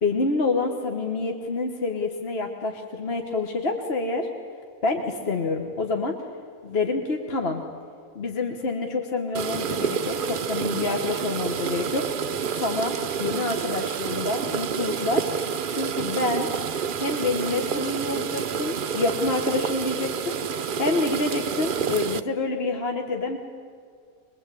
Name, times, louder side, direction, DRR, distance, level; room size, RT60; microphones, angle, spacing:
voice 1, 0.0-4.3 4.8-6.2 6.6-7.6 8.1-12.1 12.6-15.3 15.7-16.5 17.0-20.4 20.8-23.4, left 3 dB, 45° left, 3 dB, 1.5 m, -27 dB
sound 1, 9.3-22.2, right 7 dB, 50° right, 0.6 m, -28 dB
23.0 x 22.0 x 8.5 m, 2.3 s
omnidirectional pair, 1.6 m